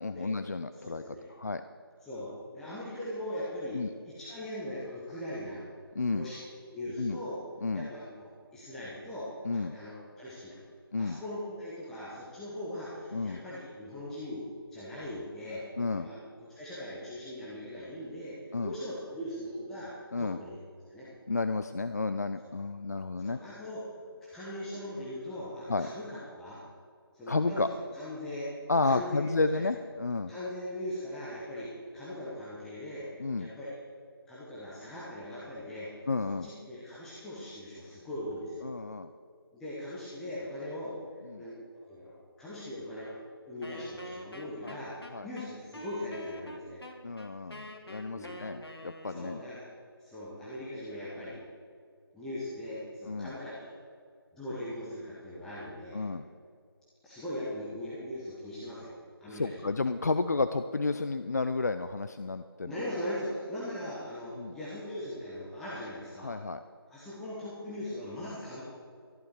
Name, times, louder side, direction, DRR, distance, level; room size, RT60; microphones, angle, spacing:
voice 1, 0.0-1.6 3.7-3.9 6.0-6.3 7.0-7.2 7.6-7.9 9.5-9.8 10.9-11.2 13.1-13.4 15.8-16.1 18.5-18.7 20.1-20.4 21.3-23.4 25.7-25.9 27.3-27.7 28.7-30.3 33.2-33.5 36.1-36.5 38.6-39.1 41.3-41.4 44.6-44.8 45.1-45.3 47.0-49.4 53.1-53.3 55.9-56.3 59.3-62.7 64.4-64.6 66.2-66.6, left 3 dB, 45° left, 10 dB, 0.4 m, -31 dB
voice 2, 0.7-1.3 2.0-5.6 6.1-7.4 7.7-10.6 11.0-20.6 20.9-21.1 23.2-23.9 24.3-26.6 27.1-28.5 28.8-29.6 30.3-33.1 33.4-33.7 34.3-38.7 39.5-41.0 41.4-43.1 43.5-46.8 48.1-48.4 49.1-49.7 50.0-51.4 52.1-53.7 54.3-56.1 57.0-58.9 59.2-59.7 62.6-66.4 66.9-68.6, left 1 dB, 5° left, -10 dB, 1.0 m, -40 dB
Wind instrument woodwind instrument, 43.6-49.4, equal, 85° left, 2.0 m, -46 dB
14.5 x 11.0 x 4.8 m, 2.2 s
figure-of-eight pair, 160°, 13 cm